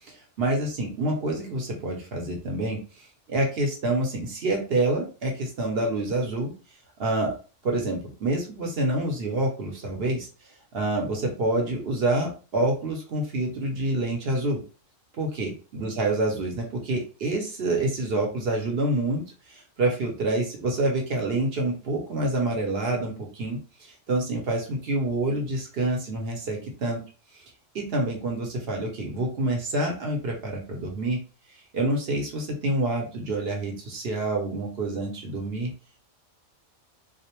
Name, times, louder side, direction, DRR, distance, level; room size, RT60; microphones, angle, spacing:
voice 1, 0.1-2.8 3.3-6.5 7.0-7.3 7.6-10.3 10.7-14.6 15.2-19.2 19.5-27.0 27.3-27.4 27.7-31.2 31.7-35.7, right 2 dB, 60° right, 0 dB, 0.8 m, -27 dB
2.4 x 2.0 x 2.9 m, 0.35 s
omnidirectional pair, 1.3 m